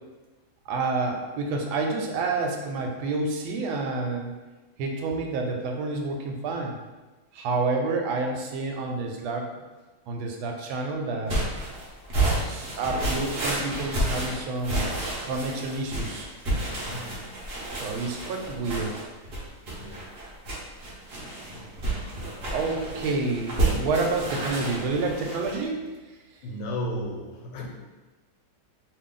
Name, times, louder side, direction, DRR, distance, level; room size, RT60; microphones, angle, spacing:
voice 1, 0.7-4.3 4.8-6.8 7.3-9.5 10.1-11.3 12.5-14.8 15.2-16.3 17.7-19.0 22.5-25.9, right 3 dB, 90° right, 2 dB, 1.4 m, -29 dB
sound 1, 11.3-25.6, right 1 dB, 55° right, 0.6 m, -30 dB
voice 2, 16.9-17.3 19.8-20.1 26.4-27.7, equal, 90° left, 0 dB, 1.4 m, -34 dB
3.1 x 2.4 x 3.6 m, 1.2 s
omnidirectional pair, 2.2 m